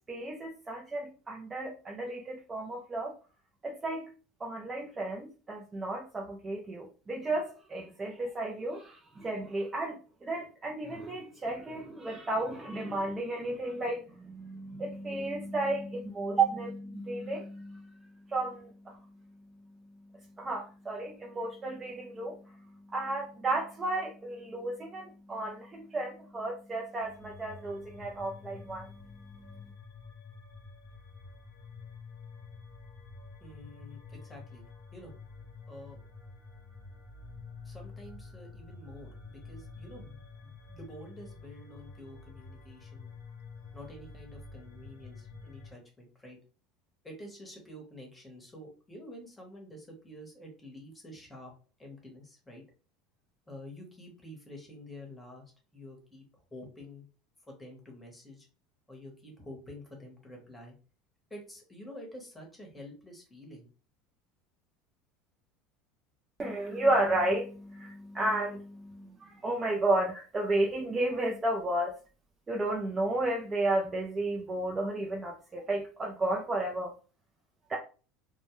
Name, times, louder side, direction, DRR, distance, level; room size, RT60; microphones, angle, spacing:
voice 1, 0.1-3.1 3.6-4.1 4.4-17.8 18.3-19.0 20.4-22.4 22.9-28.9 66.4-71.9 72.5-76.9 77.7-77.8, right 2 dB, 20° right, -1 dB, 0.4 m, -33 dB
sound 1, 27.0-45.7, left 4 dB, 85° left, 0.8 m, -49 dB
voice 2, 33.4-34.6 34.9-35.1 35.7-36.0 37.6-43.1 43.7-46.4 47.0-51.5 51.8-52.6 53.5-55.4 55.7-56.2 56.5-57.1 57.5-58.5 58.9-60.7 61.3-63.7, left 1 dB, 10° left, 0 dB, 0.9 m, -48 dB
2.2 x 2.0 x 2.9 m, 0.36 s
supercardioid pair, 135°, 0 cm